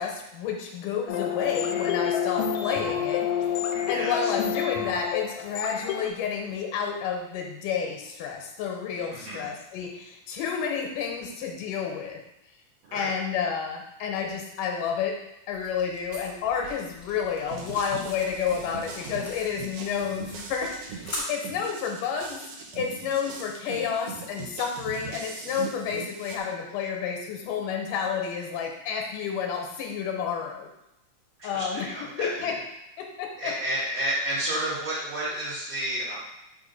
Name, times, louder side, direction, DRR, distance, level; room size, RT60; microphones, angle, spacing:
voice 1, 0.0-12.2 12.9-15.2 15.5-22.4 22.7-30.7 31.4-31.9 32.2-32.6 33.0-33.5, left 7 dB, 90° left, 2 dB, 2.4 m, -30 dB
sound 1, 1.1-6.1, left 8 dB, 75° left, 1.8 m, -28 dB
voice 2, 9.1-9.5 12.9-13.1 31.4-32.5 33.4-36.2, right 1 dB, 55° right, -11 dB, 2.6 m, -31 dB
sound 2, 15.5-21.2, left 2 dB, 55° left, 0.8 m, -43 dB
sound 3, 17.5-26.4, right 5 dB, 85° right, 1.3 m, -41 dB
5.5 x 3.7 x 5.3 m, 0.86 s
omnidirectional pair, 3.7 m